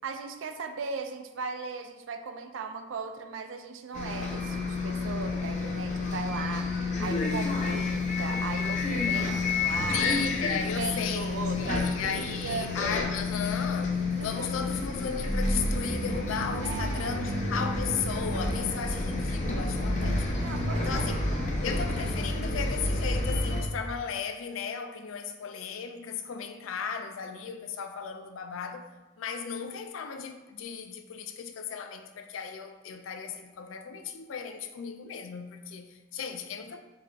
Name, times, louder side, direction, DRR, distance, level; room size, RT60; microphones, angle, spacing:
voice 1, 0.0-6.7 7.0-10.1 10.8-12.7 14.2-14.5 16.6-17.2 20.4-21.6, right 5 dB, 70° right, 0.4 m, -38 dB
Bus, 3.9-23.6, left 2 dB, 35° left, 0.6 m, -30 dB
voice 2, 9.7-20.3 20.8-21.2 21.6-28.9 29.2-36.8, left 6 dB, 80° left, 0.4 m, -35 dB
4.7 x 3.4 x 2.5 m
head